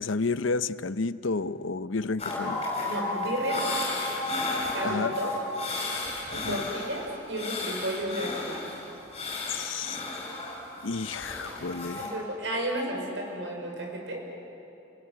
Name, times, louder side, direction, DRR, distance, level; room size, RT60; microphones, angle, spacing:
voice 1, 0.0-2.6 4.8-5.1 6.3-6.6 9.5-10.0 10.8-12.1, left 4 dB, 80° left, 14 dB, 0.8 m, -31 dB
sound 1, 2.2-12.1, left 2 dB, 30° left, 6.2 m, -33 dB
voice 2, 2.9-3.7 4.7-5.4 6.3-8.7 12.0-14.3, right 1 dB, 65° right, 1 dB, 5.5 m, -33 dB
30.0 x 19.0 x 9.6 m, 2.9 s
head